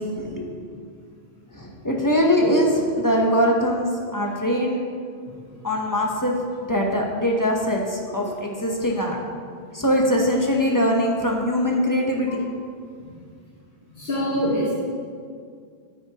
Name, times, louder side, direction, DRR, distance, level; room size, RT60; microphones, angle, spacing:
voice 1, 0.2-0.5 1.5-4.8 5.6-9.2 9.7-12.4, equal, 20° left, 0 dB, 0.8 m, -22 dB
voice 2, 13.9-14.7, equal, 65° left, -7 dB, 1.7 m, -24 dB
9.4 x 8.7 x 2.9 m, 2.1 s
omnidirectional pair, 1.1 m